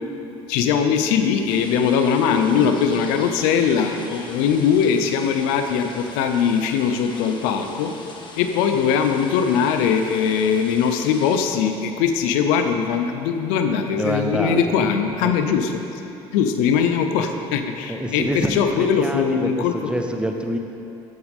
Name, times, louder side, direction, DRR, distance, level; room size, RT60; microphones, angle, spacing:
voice 1, 0.5-7.9 8.4-15.7 16.3-19.9, left 7 dB, 85° left, 6 dB, 0.8 m, -21 dB
sound 1, 1.5-11.5, left 3 dB, 35° left, 1.4 m, -41 dB
voice 2, 2.5-3.2 13.9-14.7 15.0-15.3 17.9-20.6, right 1 dB, 5° right, 4 dB, 0.9 m, -27 dB
13.5 x 8.1 x 3.7 m, 2.9 s
supercardioid pair, 95°, 13 cm